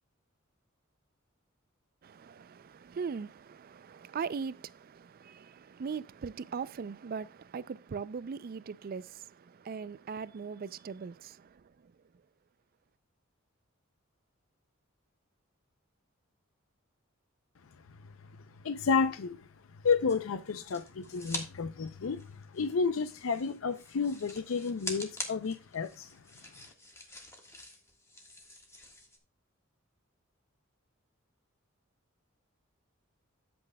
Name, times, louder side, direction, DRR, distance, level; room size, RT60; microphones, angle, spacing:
voice 1, 2.0-11.9, right 5 dB, 45° right, 0.4 m, -40 dB
voice 2, 18.6-19.5 19.8-26.2, left 5 dB, 75° left, 0.5 m, -31 dB
sound 1, 20.1-21.5 21.8-29.2, left 2 dB, 15° left, 1.5 m, -45 dB
11.5 x 7.8 x 2.2 m
head